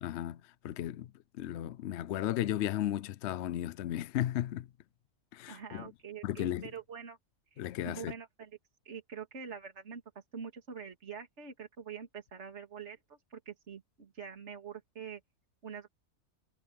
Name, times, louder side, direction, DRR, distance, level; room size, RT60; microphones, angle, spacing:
voice 1, 0.0-1.1 1.4-4.7 5.3-5.9 6.2-6.6 7.6-8.1, left 12 dB, 65° left, 0.8 m, -35 dB
voice 2, 5.5-7.2 7.5-8.6 8.9-10.0 10.3-15.2 15.6-15.9, right 7 dB, 55° right, 2.5 m, -45 dB
omnidirectional pair, 1.4 m